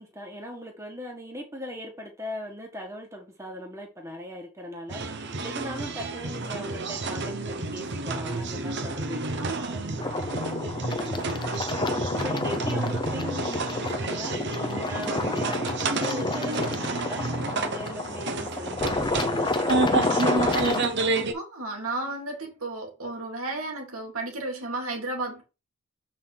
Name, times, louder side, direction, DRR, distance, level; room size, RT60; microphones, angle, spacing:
voice 1, 0.0-10.7 10.9-11.4 12.2-14.3 14.9-19.9, equal, 15° right, 1.5 m, -39 dB
sound 1, 4.9-21.3, right 3 dB, 50° right, 0.9 m, -30 dB
voice 2, 9.4-9.8 21.3-25.4, right 2 dB, 85° right, 2.4 m, -33 dB
sound 2, 10.0-20.9, left 2 dB, 20° left, 0.7 m, -29 dB
7.5 x 4.4 x 3.9 m
head